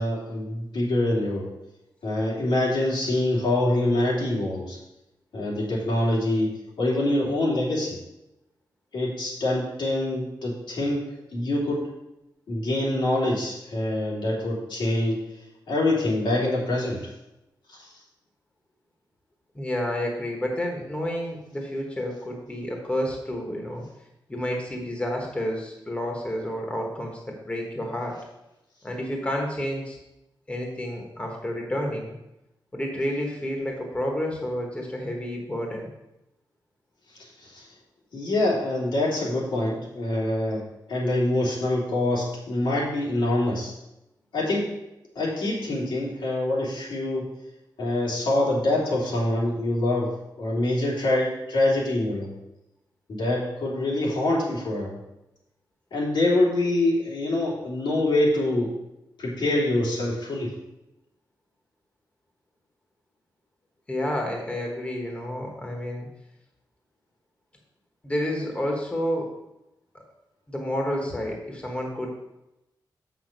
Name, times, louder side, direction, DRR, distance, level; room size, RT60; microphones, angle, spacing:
voice 1, 0.0-1.5 2.0-4.8 5.3-8.0 8.9-11.1 11.3-11.9 12.5-15.2 15.7-17.1 17.7-17.9 37.1-37.7 38.1-43.7 44.3-44.7 45.1-47.3 47.8-52.4 53.1-55.0 55.9-58.7 59.2-60.5, left 1 dB, 85° left, -5 dB, 2.9 m, -25 dB
voice 2, 19.5-23.8 24.3-28.2 28.8-30.0 30.5-32.1 32.7-35.9 63.9-66.1 68.0-69.3 70.5-72.2, left 1 dB, 15° left, 0 dB, 1.2 m, -30 dB
7.2 x 6.1 x 5.2 m, 0.91 s
wide cardioid pair, 160°, 8 cm